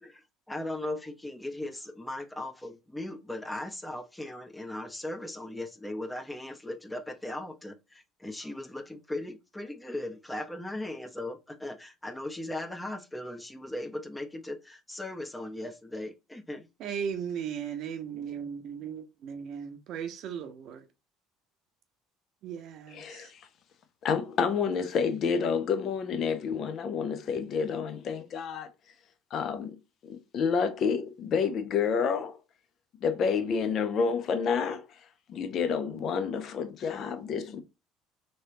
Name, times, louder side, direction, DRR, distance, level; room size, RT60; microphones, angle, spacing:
voice 1, 0.0-16.7, left 1 dB, 10° left, 0.8 m, -38 dB
voice 2, 16.8-20.9 22.4-23.3, right 7 dB, 60° right, 0.7 m, -37 dB
voice 3, 22.9-23.4 24.0-28.7 29.3-29.8 30.0-32.4 33.0-34.8 35.3-37.6, left 6 dB, 50° left, 0.7 m, -29 dB
3.2 x 3.0 x 2.7 m
hypercardioid pair, 65°, 0 cm